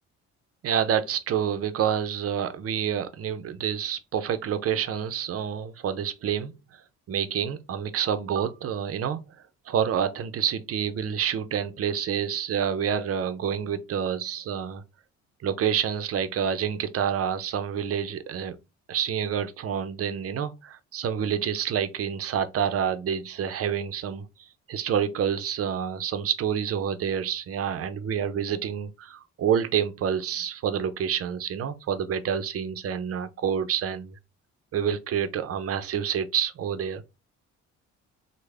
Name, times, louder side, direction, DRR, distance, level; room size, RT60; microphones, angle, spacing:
voice 1, 0.6-6.5 7.1-9.2 9.7-14.8 15.4-18.6 18.9-34.2 34.7-37.0, right 8 dB, 50° right, 0.6 m, -28 dB
3.2 x 2.1 x 3.4 m
cardioid pair, 90°, 30 cm